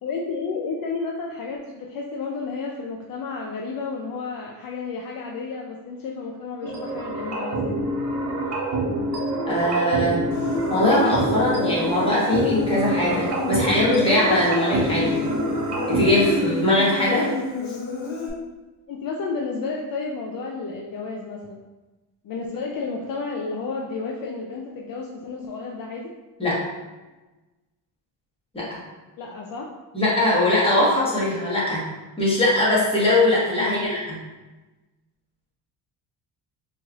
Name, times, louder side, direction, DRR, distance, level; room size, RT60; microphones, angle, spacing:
voice 1, 0.0-7.7 17.0-17.4 18.9-21.6 22.2-26.1 29.2-29.7 33.6-33.8, left 4 dB, 55° left, -1 dB, 0.5 m, -31 dB
sound 1, 6.6-16.3, right 1 dB, 40° right, 0.9 m, -26 dB
voice 2, 9.5-10.2 10.7-15.2 15.9-17.3 26.4-26.6 28.5-28.7 29.9-31.9 32.2-34.2, left 1 dB, 15° left, -7 dB, 1.4 m, -21 dB
Human voice, 10.3-18.3, left 3 dB, 85° left, 0.9 m, -31 dB
4.5 x 3.2 x 2.4 m, 1.1 s
cardioid pair, 120°, 41 cm